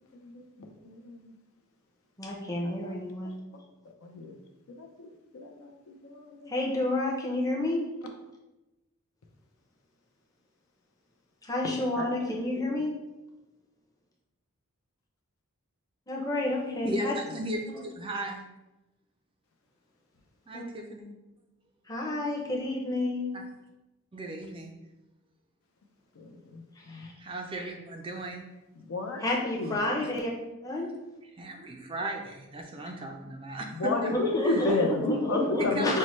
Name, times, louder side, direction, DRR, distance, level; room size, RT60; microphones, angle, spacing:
voice 1, 0.1-1.3 2.8-3.0 4.0-4.3 4.8-6.5 12.0-12.3 26.5-27.1 28.9-29.2 29.6-29.8 33.7-36.0, left 2 dB, 70° left, 3 dB, 0.6 m, -31 dB
voice 2, 2.2-3.3 6.5-7.9 11.4-12.9 16.1-17.1 20.5-20.7 21.9-23.3 26.9-27.1 29.2-30.3 30.6-30.9 34.3-36.0, left 2 dB, 15° left, -3 dB, 0.6 m, -30 dB
voice 3, 16.8-18.4 20.5-21.1 23.3-23.4 24.1-24.8 27.2-28.5 30.0-30.1 31.3-34.1 34.4-34.8 35.6-36.0, right 1 dB, 25° right, 2 dB, 0.3 m, -36 dB
5.5 x 2.1 x 3.1 m, 1.0 s
head